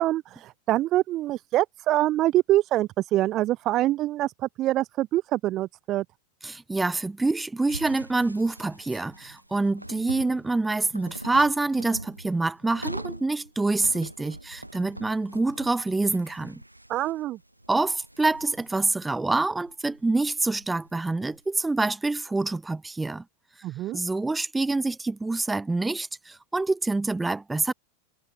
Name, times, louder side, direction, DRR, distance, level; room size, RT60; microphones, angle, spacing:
voice 1, 0.0-6.0 16.9-17.4 23.6-24.0, right 15 dB, 35° right, 0.5 m, -25 dB
voice 2, 6.4-16.6 17.7-23.2 23.9-27.7, right 3 dB, 10° right, 1.5 m, -26 dB
sound 1, 7.7-21.4, right 1 dB, 85° right, 5.2 m, -42 dB
figure-of-eight pair, 90°, 0 cm